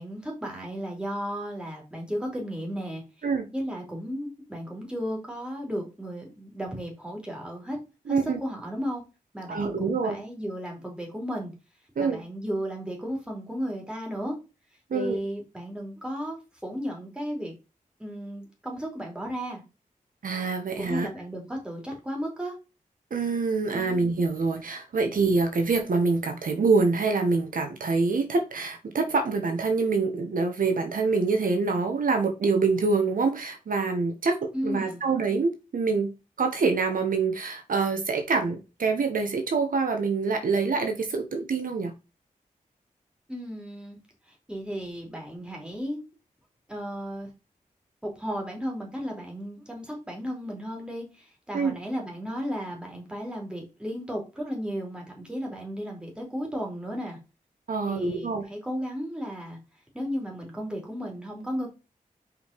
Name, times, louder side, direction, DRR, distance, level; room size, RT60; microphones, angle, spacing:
voice 1, 0.0-3.0 3.5-7.8 8.1-9.0 9.3-11.5 12.0-14.4 14.9-17.5 18.0-19.6 20.8-22.5 23.7-24.0 34.5-35.0 43.3-44.0 44.5-46.0 46.7-47.3 48.0-57.2 57.9-59.6 59.9-61.7, equal, 5° right, 3.2 m, -34 dB
voice 2, 8.1-8.4 9.5-10.2 12.0-12.2 14.9-15.2 20.2-21.1 23.1-41.9 51.5-51.7 57.7-58.4, right 4 dB, 75° right, 1.3 m, -25 dB
5.3 x 5.0 x 5.2 m
wide cardioid pair, 140°, 14 cm